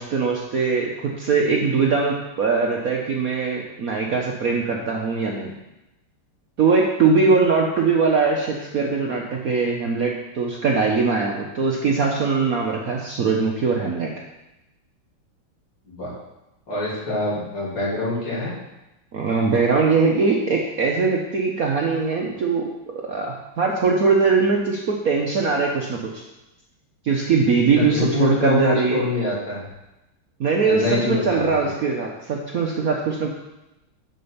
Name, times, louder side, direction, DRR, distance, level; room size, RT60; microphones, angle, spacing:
voice 1, 0.0-5.5 6.6-14.1 19.1-22.6 23.1-26.2 27.0-29.1 30.4-33.3, right 4 dB, 55° right, -1 dB, 1.1 m, -21 dB
voice 2, 16.7-18.5 27.8-29.6 30.6-31.7, left 2 dB, 60° left, -7 dB, 3.7 m, -24 dB
7.7 x 6.8 x 5.5 m, 0.96 s
omnidirectional pair, 2.3 m